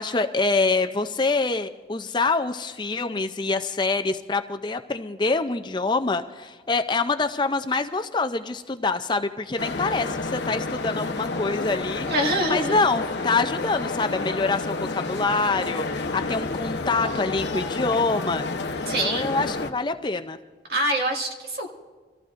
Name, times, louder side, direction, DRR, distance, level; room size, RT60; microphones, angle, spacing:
voice 1, 0.0-12.1 12.5-18.5 19.0-20.4, left 3 dB, 25° left, 8 dB, 0.5 m, -25 dB
sound 1, 9.6-19.7, left 3 dB, 75° left, 1.0 m, -30 dB
voice 2, 12.1-12.8 18.9-19.3 20.7-21.7, right 1 dB, 55° right, 1 dB, 2.1 m, -25 dB
25.0 x 15.0 x 2.5 m, 1.4 s
head